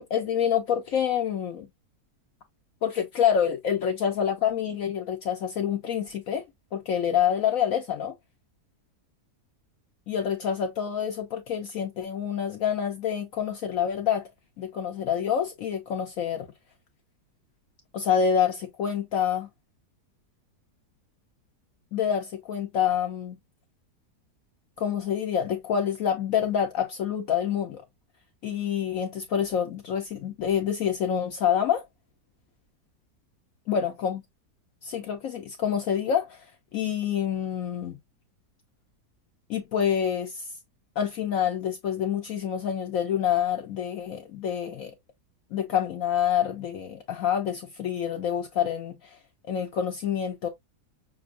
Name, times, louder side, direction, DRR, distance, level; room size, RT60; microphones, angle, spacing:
voice 1, 0.0-1.7 2.8-6.4 6.7-8.1 10.1-14.3 14.6-16.5 17.9-19.5 21.9-23.4 24.8-27.8 28.4-31.8 33.7-34.2 34.8-36.5 36.7-38.0 39.5-40.5 41.0-44.9 45.5-49.2 49.5-50.5, left 8 dB, 65° left, 1.0 m, -27 dB
6.0 x 2.4 x 2.6 m
omnidirectional pair, 1.7 m